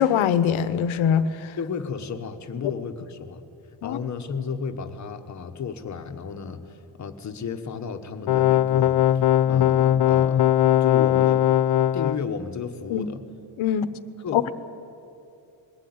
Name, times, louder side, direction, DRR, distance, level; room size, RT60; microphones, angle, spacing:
voice 1, 0.0-1.5 3.8-4.0 12.9-13.1 13.6-13.9 14.3-14.5, left 8 dB, 80° left, 1.0 m, -22 dB
voice 2, 1.6-3.4 3.8-10.5 10.8-13.2 14.2-14.5, left 6 dB, 35° left, 1.2 m, -33 dB
sound 1, 8.3-12.2, left 12 dB, 55° left, 0.6 m, -19 dB
21.5 x 16.0 x 9.5 m
wide cardioid pair, 180°, 47 cm